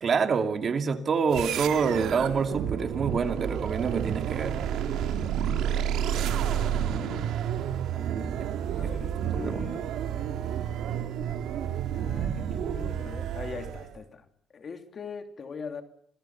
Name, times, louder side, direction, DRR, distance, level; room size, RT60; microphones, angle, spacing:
voice 1, 0.0-4.7 7.9-8.4 9.4-9.6, right 5 dB, 50° right, 7 dB, 2.6 m, -27 dB
sound 1, 1.3-14.0, right 9 dB, 85° right, 2.4 m, -30 dB
voice 2, 5.4-6.6 6.9-7.3 8.7-9.9 11.9-14.2 14.5-15.8, left 5 dB, 45° left, 6 dB, 3.1 m, -42 dB
27.0 x 21.5 x 5.9 m, 0.63 s
cardioid pair, 90°, 0 cm